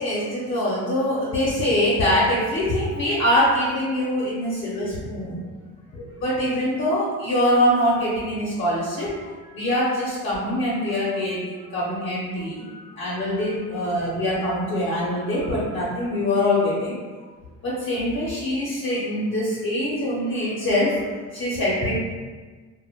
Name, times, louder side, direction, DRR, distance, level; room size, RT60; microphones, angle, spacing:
voice 1, 0.0-5.5 5.9-17.3 17.6-21.1 21.3-21.9, left 1 dB, 45° left, -8 dB, 0.7 m, -24 dB
2.1 x 2.1 x 3.4 m, 1.4 s
cardioid pair, 120°, 30 cm